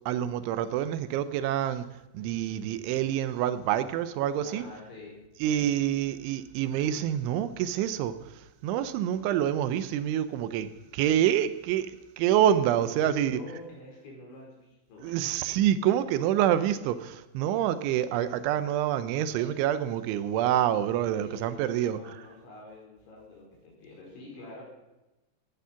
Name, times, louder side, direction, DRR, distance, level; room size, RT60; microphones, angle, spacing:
voice 1, 0.0-1.9 2.1-4.6 5.4-13.4 15.0-22.2, right 11 dB, 80° right, 13 dB, 3.0 m, -27 dB
voice 2, 4.4-5.2 12.7-15.4 21.2-24.6, left 2 dB, 65° left, -2 dB, 7.0 m, -46 dB
15.5 x 11.0 x 5.7 m, 1.0 s
omnidirectional pair, 5.7 m